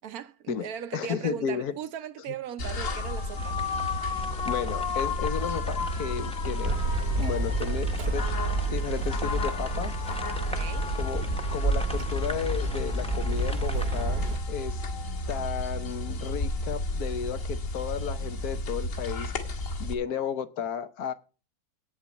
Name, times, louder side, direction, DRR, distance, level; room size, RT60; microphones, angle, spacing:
voice 1, 0.0-3.6 10.4-10.9, right 9 dB, 70° right, 1.2 m, -38 dB
voice 2, 0.9-1.7 4.4-6.7 7.2-8.3 8.7-9.9 10.9-14.8 15.3-19.3 19.8-21.1, left 7 dB, 75° left, 1.4 m, -33 dB
sound 1, 2.6-19.9, left 2 dB, 55° left, 2.0 m, -32 dB
sound 2, 3.3-14.1, equal, 5° left, 0.7 m, -42 dB
sound 3, 6.6-14.4, right 3 dB, 45° right, 1.0 m, -30 dB
9.1 x 7.2 x 7.1 m
omnidirectional pair, 1.7 m